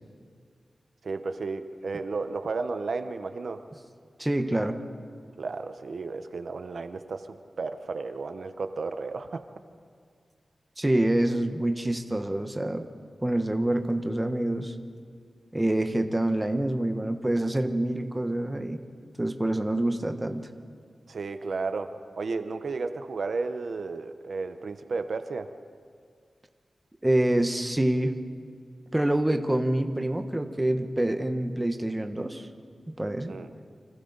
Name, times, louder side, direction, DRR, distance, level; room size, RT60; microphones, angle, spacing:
voice 1, 1.0-3.7 5.4-9.4 21.1-25.5 33.3-33.5, right 4 dB, 65° right, 8 dB, 0.9 m, -33 dB
voice 2, 4.2-4.8 10.8-12.8 13.2-14.7 15.5-18.8 19.2-20.5 27.0-28.2 28.9-32.5 32.9-33.4, right 1 dB, 10° right, 6 dB, 1.1 m, -26 dB
29.5 x 25.5 x 4.0 m, 2.1 s
wide cardioid pair, 145°, 0 cm